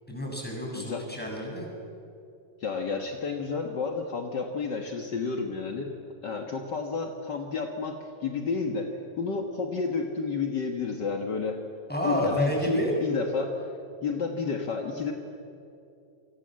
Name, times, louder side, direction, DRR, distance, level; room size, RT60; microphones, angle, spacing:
voice 1, 0.1-1.7 11.9-12.9, equal, ahead, -1 dB, 6.6 m, -30 dB
voice 2, 0.7-1.1 2.6-5.9 6.2-11.6 12.0-13.7 14.0-15.1, left 4 dB, 50° left, 3 dB, 1.3 m, -31 dB
29.5 x 24.5 x 7.6 m, 2.7 s
omnidirectional pair, 4.1 m